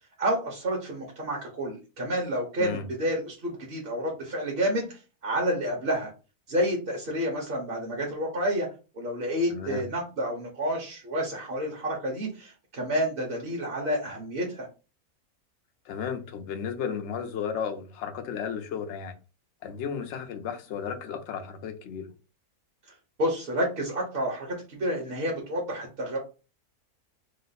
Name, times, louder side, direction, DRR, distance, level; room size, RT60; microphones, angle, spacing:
voice 1, 0.2-6.1 6.5-8.7 8.9-14.7 23.2-26.2, equal, 45° right, 1.0 m, -29 dB
voice 2, 9.5-9.8 15.8-19.2 19.6-22.1, left 7 dB, 60° left, 0.8 m, -34 dB
3.1 x 2.0 x 4.0 m
omnidirectional pair, 1.6 m